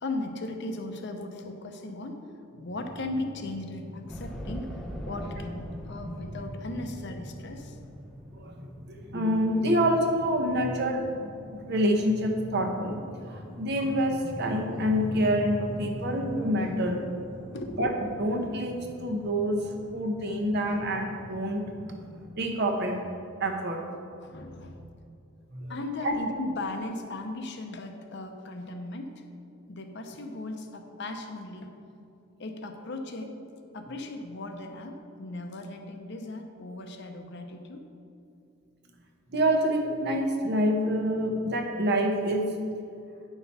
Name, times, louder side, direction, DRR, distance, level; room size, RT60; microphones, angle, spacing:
voice 1, 0.0-2.2 2.5-4.7 5.0-7.8 16.9-17.1 17.5-17.8 24.2-24.8 25.7-29.1 29.7-31.7 32.4-33.4 33.7-37.9, left 2 dB, 55° left, 5 dB, 0.8 m, -37 dB
sound 1, 2.7-22.3, equal, 15° right, 1.6 m, -43 dB
sound 2, 4.1-9.0, equal, ahead, 0.6 m, -41 dB
voice 2, 8.3-17.0 17.8-19.7 19.9-21.6 22.4-23.1 23.4-23.8 25.5-25.7 26.0-26.1 39.3-42.5, equal, 50° right, 3 dB, 1.0 m, -27 dB
9.9 x 5.9 x 4.2 m, 2.7 s
head